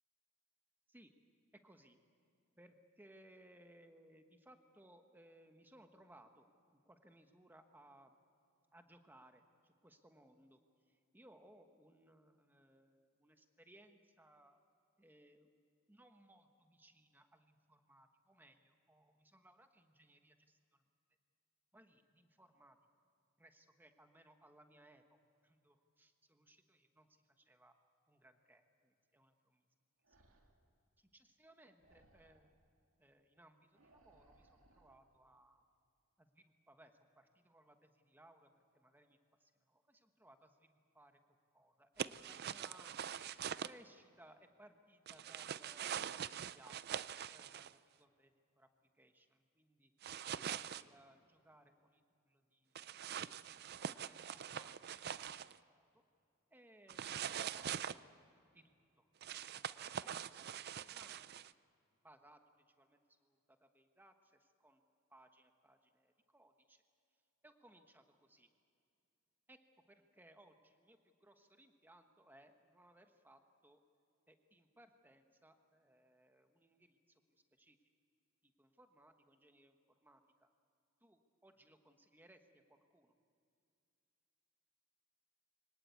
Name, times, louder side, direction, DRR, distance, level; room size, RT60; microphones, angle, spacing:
voice 1, 1.6-2.0 2.6-6.5 6.9-8.1 8.7-10.6 10.9-14.6 15.0-15.5 15.9-20.8 21.7-22.8 23.4-25.2 25.4-27.1 27.4-27.7 28.1-29.6 30.1-30.2 31.0-32.5 33.0-35.6 36.2-41.2 41.5-46.8 47.2-48.3 48.6-48.7 49.0-49.9 50.3-52.8 53.8-55.1 55.4-56.0 56.5-58.2 58.5-61.3 62.0-62.4 62.8-64.8 65.1-66.8 67.4-68.5 69.5-69.6 69.9-73.8 74.3-77.0 77.6-77.8 78.4-79.8 80.0-80.5 81.0-83.1, right 1 dB, 10° right, 6 dB, 1.2 m, -65 dB
sound 1, 30.0-30.7 31.8-32.6 33.7-35.0, right 1 dB, 75° right, 2.6 m, -69 dB
sound 2, 42.0-43.7 45.1-47.7 50.0-50.8 52.7-55.6 56.9-58.0 59.2-61.5, right 8 dB, 50° right, 0.4 m, -44 dB
24.0 x 18.5 x 8.4 m, 2.5 s
head